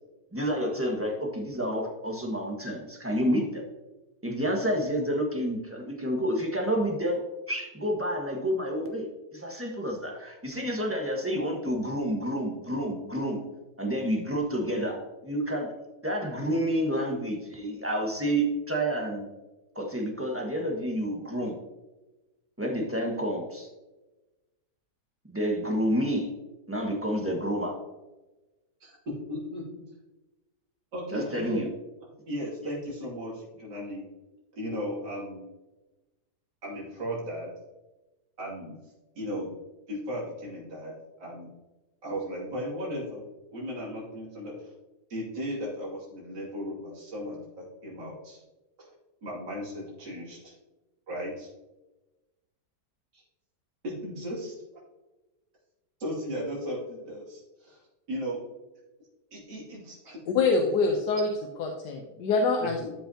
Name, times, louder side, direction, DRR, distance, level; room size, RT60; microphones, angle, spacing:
voice 1, 0.3-3.6 4.2-7.2 7.5-13.4 13.8-15.7 16.0-19.3 19.7-21.6 22.6-23.7 25.3-26.3 26.7-27.8 31.1-31.7, equal, 10° right, 0 dB, 1.3 m, -29 dB
voice 2, 29.3-29.6 30.9-31.7 32.3-34.1 34.6-35.5 36.6-37.5 38.4-38.8 39.1-39.5 39.9-41.5 42.0-43.2 43.5-44.7 45.1-48.4 49.2-50.5 51.1-51.5 53.1-53.2 53.8-54.6 56.0-57.8 58.1-58.4 59.3-60.2 62.6-62.9, equal, 90° right, -6 dB, 3.2 m, -36 dB
voice 3, 60.3-61.3 61.6-62.8, left 4 dB, 80° left, 2 dB, 1.4 m, -25 dB
12.5 x 5.7 x 2.8 m, 1.1 s
omnidirectional pair, 1.8 m